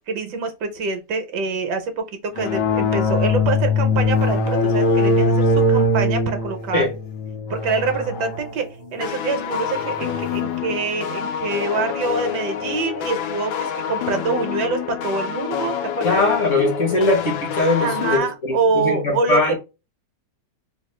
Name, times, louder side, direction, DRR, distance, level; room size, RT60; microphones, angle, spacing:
voice 1, 0.1-6.8 7.5-16.2 17.8-19.6, right 4 dB, 70° right, 1.2 m, -25 dB
sound 1, 2.4-10.5, left 2 dB, 75° left, 1.3 m, -21 dB
sound 2, 9.0-18.2, left 9 dB, 90° left, 1.4 m, -27 dB
voice 2, 16.0-19.6, left 2 dB, 55° left, 1.0 m, -21 dB
3.5 x 2.3 x 3.1 m
omnidirectional pair, 2.0 m